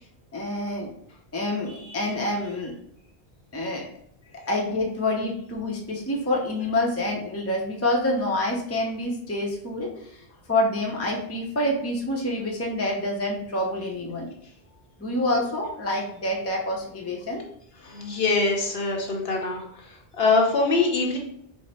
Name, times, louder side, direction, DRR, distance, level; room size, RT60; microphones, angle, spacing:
voice 1, 0.3-0.9 1.3-2.7 3.5-3.9 4.5-10.1 10.5-14.3 15.0-17.4, left 1 dB, 15° left, -1 dB, 0.6 m, -27 dB
voice 2, 17.8-19.6 20.2-21.2, left 3 dB, 65° left, 0 dB, 1.1 m, -23 dB
4.6 x 2.1 x 4.2 m, 0.68 s
omnidirectional pair, 1.1 m